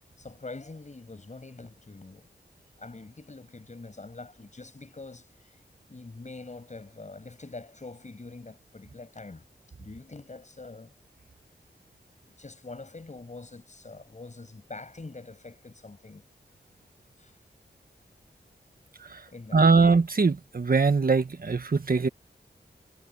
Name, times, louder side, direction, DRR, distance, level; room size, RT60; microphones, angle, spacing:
voice 1, 0.2-2.3 2.8-5.6 5.9-9.4 9.8-10.9 12.2-16.2 17.2-17.3 19.3-19.7, left 3 dB, 40° left, 7.9 m, -44 dB
voice 2, 19.5-22.1, right 4 dB, 50° right, 1.7 m, -22 dB
wide cardioid pair, 85°, 18 cm